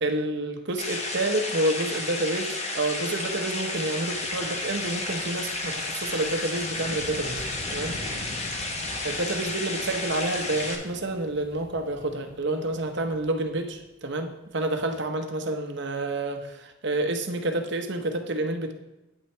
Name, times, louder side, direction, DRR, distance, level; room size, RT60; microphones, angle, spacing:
voice 1, 0.0-7.4 7.7-7.9 9.0-18.7, right 2 dB, 65° right, 5 dB, 0.9 m, -29 dB
sound 1, 0.8-10.7, left 2 dB, 35° left, 1.2 m, -32 dB
Wind, 3.6-13.8, equal, 50° left, 3.6 m, -44 dB
8.9 x 8.3 x 3.4 m, 1.0 s
head